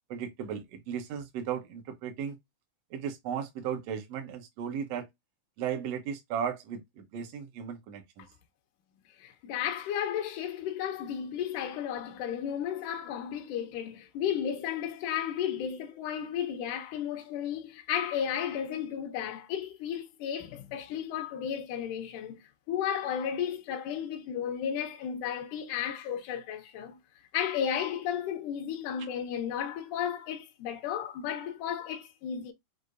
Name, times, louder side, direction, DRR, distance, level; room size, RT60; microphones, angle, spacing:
voice 1, 0.1-2.4 2.9-5.1 5.6-8.3, right 8 dB, 60° right, 1.9 m, -35 dB
voice 2, 9.2-27.0 27.3-32.5, left 9 dB, 75° left, 2.2 m, -33 dB
6.6 x 2.9 x 2.5 m
omnidirectional pair, 3.9 m